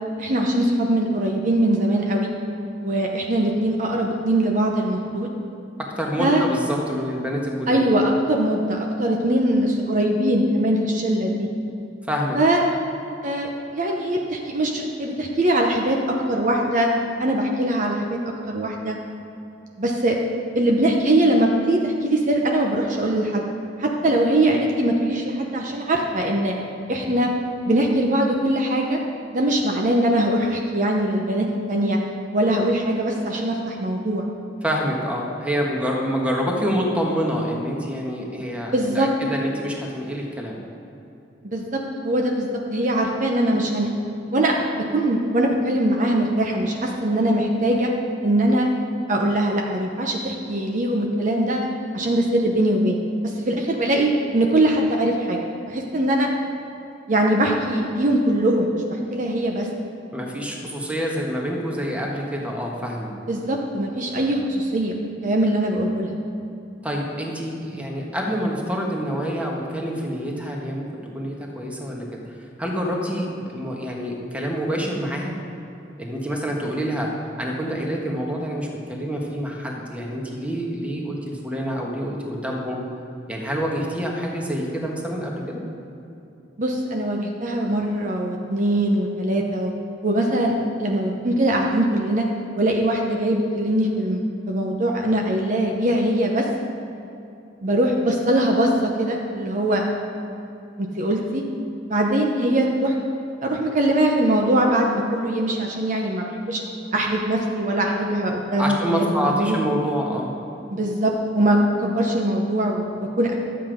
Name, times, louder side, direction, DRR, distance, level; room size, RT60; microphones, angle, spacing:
voice 1, 0.2-2.3 2.8-5.3 6.2-6.5 7.7-11.5 12.3-12.6 13.2-16.9 17.2-18.2 18.5-19.0 19.8-20.2 20.5-23.4 23.8-26.6 26.9-27.3 27.7-29.0 29.3-32.0 32.3-34.2 38.7-39.1 41.4-43.9 44.3-47.9 48.2-48.7 49.1-55.4 55.7-56.3 57.1-59.7 63.3-65.0 65.2-66.2 86.6-89.7 90.0-92.3 92.6-94.2 94.5-96.5 97.6-99.8 100.8-101.4 101.9-103.0 103.4-106.6 106.9-109.6 110.7-113.3, right 1 dB, 45° right, 1 dB, 0.8 m, -22 dB
voice 2, 6.0-7.8 12.1-12.4 34.6-40.6 60.1-63.1 66.8-72.3 72.6-75.4 76.0-82.8 83.3-85.6 108.6-110.3, equal, 10° right, -1 dB, 1.4 m, -27 dB
12.0 x 7.8 x 5.1 m, 2.7 s
head